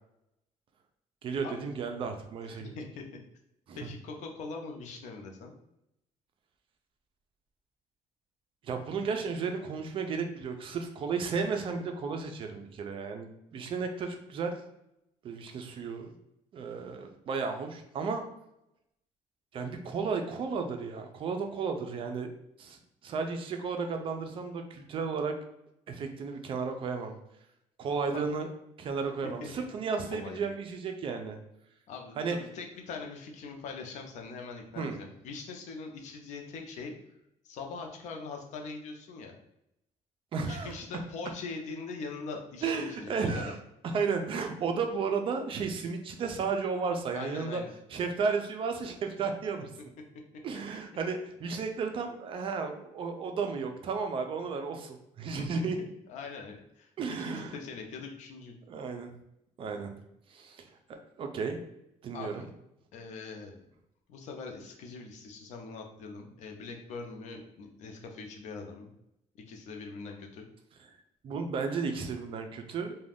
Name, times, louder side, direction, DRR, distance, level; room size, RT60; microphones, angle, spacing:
voice 1, 1.2-2.7 3.7-3.9 8.6-14.5 15.2-16.1 16.5-18.2 19.5-22.3 22.6-25.4 25.9-27.2 27.8-28.5 28.8-31.4 32.2-32.4 34.8-35.0 40.3-40.7 42.6-43.5 43.9-47.6 47.9-49.7 50.4-55.8 57.0-57.5 58.7-59.1 59.6-59.9 60.3-60.6 61.2-61.6 62.0-62.4 71.2-73.0, right 5 dB, 45° right, 5 dB, 0.4 m, -33 dB
voice 2, 2.4-3.1 3.7-5.5 28.1-28.3 29.4-29.5 30.1-30.4 31.9-36.9 37.4-39.3 40.5-43.5 47.1-47.7 55.6-55.7 56.1-56.9 57.2-58.5 62.1-62.5 62.9-63.6 64.1-68.9 69.5-70.5, left 4 dB, 70° left, 3 dB, 0.6 m, -42 dB
2.5 x 2.2 x 3.3 m, 0.81 s
cardioid pair, 135°, 13 cm